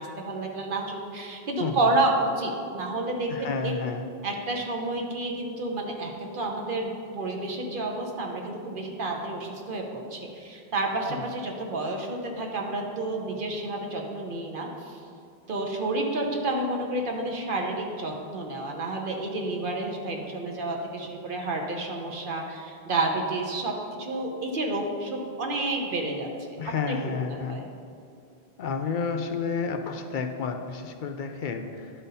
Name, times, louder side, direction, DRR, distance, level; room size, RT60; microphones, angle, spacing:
voice 1, 0.0-3.7 4.2-15.0 15.5-23.7 24.0-26.6 26.9-27.6, right 2 dB, 60° right, 1 dB, 1.0 m, -30 dB
voice 2, 3.3-4.0 11.1-11.2 26.6-27.6 28.6-31.9, left 5 dB, 60° left, 5 dB, 0.6 m, -31 dB
11.0 x 3.9 x 4.1 m, 2.4 s
omnidirectional pair, 1.0 m